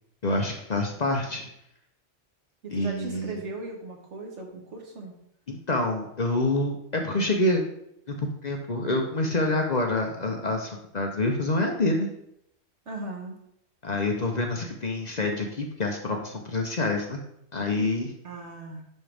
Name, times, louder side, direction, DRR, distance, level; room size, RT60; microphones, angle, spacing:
voice 1, 0.2-1.5 2.7-3.3 5.5-7.6 8.1-12.1 13.8-17.2 17.5-18.1, left 2 dB, 40° left, 2 dB, 0.8 m, -27 dB
voice 2, 2.6-5.2 9.4-9.6 12.9-13.4 18.2-18.8, right 2 dB, 75° right, 1 dB, 1.6 m, -38 dB
10.5 x 3.8 x 3.4 m, 0.78 s
omnidirectional pair, 1.2 m